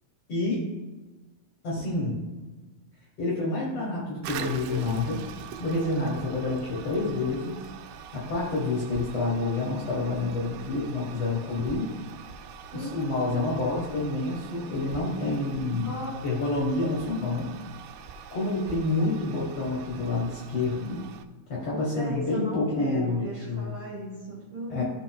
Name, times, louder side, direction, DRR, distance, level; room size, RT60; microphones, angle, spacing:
voice 1, 0.3-0.6 1.6-2.1 3.2-5.2 5.6-7.6 8.1-11.9 12.7-16.0 16.2-17.5 18.3-21.1 21.5-23.7 24.7-24.8, left 2 dB, 55° left, -4 dB, 2.0 m, -28 dB
voice 2, 1.8-2.2 12.7-13.5 15.8-16.1 21.9-24.8, right 1 dB, 40° right, -6 dB, 2.0 m, -37 dB
Toilet flush, 4.2-21.3, right 7 dB, 90° right, 2.3 m, -43 dB
14.0 x 5.0 x 2.3 m, 1.2 s
omnidirectional pair, 4.0 m